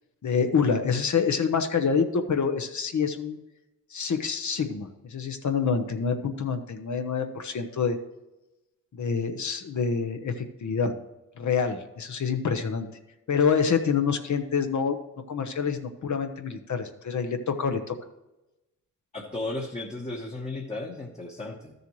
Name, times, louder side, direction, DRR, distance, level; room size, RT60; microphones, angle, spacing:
voice 1, 0.2-3.4 3.9-8.0 8.9-10.3 10.6-10.9 11.4-12.9 13.3-15.0 15.3-17.9, left 6 dB, 60° left, 6 dB, 1.0 m, -26 dB
voice 2, 19.1-21.7, left 2 dB, 20° left, -2 dB, 1.1 m, -34 dB
13.0 x 6.7 x 3.1 m, 0.99 s
wide cardioid pair, 115°, 33 cm